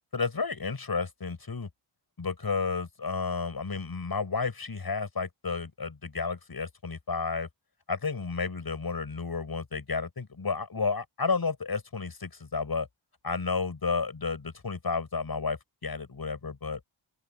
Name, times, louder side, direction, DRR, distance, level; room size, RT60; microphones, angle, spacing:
voice 1, 0.1-1.7 2.2-7.5 7.9-12.9 13.2-16.8, left 4 dB, 45° left, 7.1 m, -32 dB
open air
wide cardioid pair, 125°, 49 cm